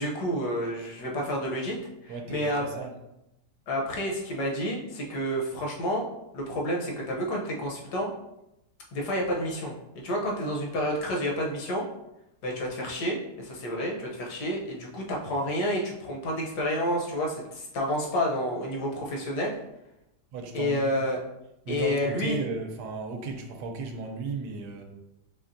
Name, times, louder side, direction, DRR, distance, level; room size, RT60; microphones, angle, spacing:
voice 1, 0.0-2.8 3.7-6.0 6.3-8.1 8.9-11.9 12.4-19.5 20.5-21.2 21.7-22.4, equal, 70° left, -1 dB, 1.3 m, -30 dB
voice 2, 2.1-2.5 2.8-2.9 20.3-20.9 21.7-24.8, right 4 dB, 70° right, 4 dB, 1.2 m, -35 dB
4.3 x 3.3 x 2.6 m, 0.88 s
omnidirectional pair, 1.9 m